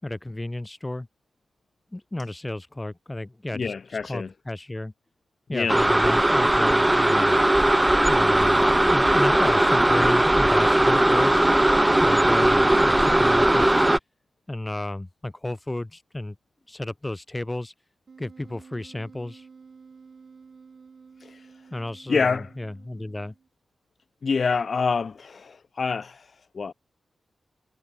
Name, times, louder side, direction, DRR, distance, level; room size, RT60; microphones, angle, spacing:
voice 1, 0.0-1.1 1.9-4.9 5.5-7.4 8.1-11.4 12.0-13.9 14.5-16.4 16.7-17.7 18.2-19.5 21.7-23.3, left 1 dB, 20° left, 6.2 m, -32 dB
voice 2, 3.5-4.3 5.5-5.8 21.2-21.5 22.1-22.5 24.2-26.7, left 5 dB, 60° left, 1.5 m, -27 dB
sound 1, 5.7-14.0, right 1 dB, 15° right, 1.4 m, -19 dB
Wind instrument woodwind instrument, 18.1-23.5, right 5 dB, 60° right, 4.7 m, -50 dB
cardioid pair, 45°, 0 cm